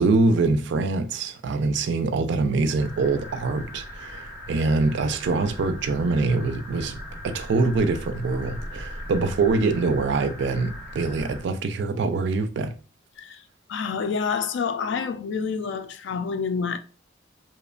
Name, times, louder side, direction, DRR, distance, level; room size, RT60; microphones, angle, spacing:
voice 1, 0.0-12.7, right 3 dB, 60° right, 0.3 m, -24 dB
sound 1, 2.8-11.4, left 1 dB, 10° right, 0.6 m, -39 dB
voice 2, 13.7-16.8, left 5 dB, 65° left, 0.3 m, -28 dB
2.9 x 2.1 x 2.4 m
head